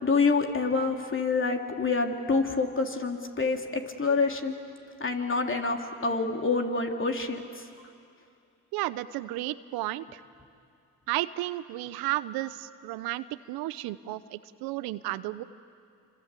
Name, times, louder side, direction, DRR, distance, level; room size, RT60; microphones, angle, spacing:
voice 1, 0.0-4.5 5.0-7.7, left 4 dB, 35° left, 3 dB, 3.2 m, -27 dB
voice 2, 8.7-10.2 11.1-15.4, right 16 dB, 85° right, 15 dB, 0.8 m, -33 dB
27.0 x 25.5 x 8.4 m, 2.4 s
supercardioid pair, 55°, 35 cm